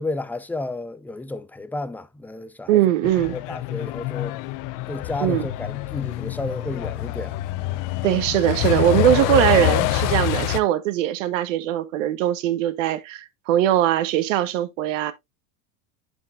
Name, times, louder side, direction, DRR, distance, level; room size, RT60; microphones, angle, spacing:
voice 1, 0.0-2.8 3.3-4.4 4.9-7.4, left 2 dB, 5° left, 0.3 m, -32 dB
voice 2, 2.7-3.4 5.2-5.5 8.0-15.1, right 12 dB, 85° right, 1.0 m, -21 dB
Truck, 3.0-10.6, left 15 dB, 55° left, 0.8 m, -26 dB
11.0 x 4.6 x 2.3 m
supercardioid pair, 125°, 37 cm